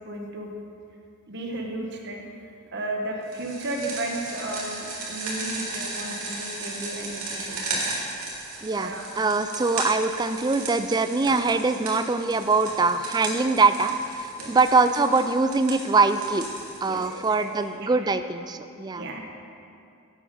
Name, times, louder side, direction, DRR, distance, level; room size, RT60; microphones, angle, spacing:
voice 1, 0.1-0.5 1.3-2.2 2.7-7.8 8.7-9.0 14.4-14.6 16.9-17.5 18.0-18.1 19.0-19.3, right 1 dB, 55° right, 1 dB, 1.2 m, -34 dB
sound 1, 3.3-17.6, right 2 dB, 90° right, 2.4 m, -35 dB
voice 2, 8.6-16.5 16.8-19.1, right 3 dB, 20° right, 10 dB, 0.3 m, -23 dB
10.5 x 8.4 x 5.4 m, 2.5 s
head